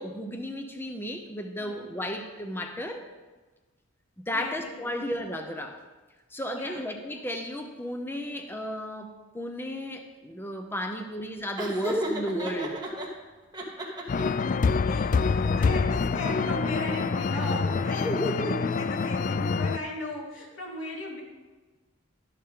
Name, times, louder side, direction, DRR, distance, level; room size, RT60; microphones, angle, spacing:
voice 1, 0.0-3.0 4.3-5.8 6.3-12.8 15.4-15.6 17.9-18.6, equal, 10° left, 4 dB, 0.8 m, -34 dB
voice 2, 4.3-4.9 6.5-6.8 14.8-21.2, left 1 dB, 90° left, -3 dB, 3.1 m, -37 dB
Laughter, 11.6-13.1 13.5-14.4, equal, 20° right, 2.0 m, -32 dB
sound 1, 14.1-19.8, left 4 dB, 40° left, 0.3 m, -26 dB
13.0 x 11.5 x 3.8 m, 1.3 s
head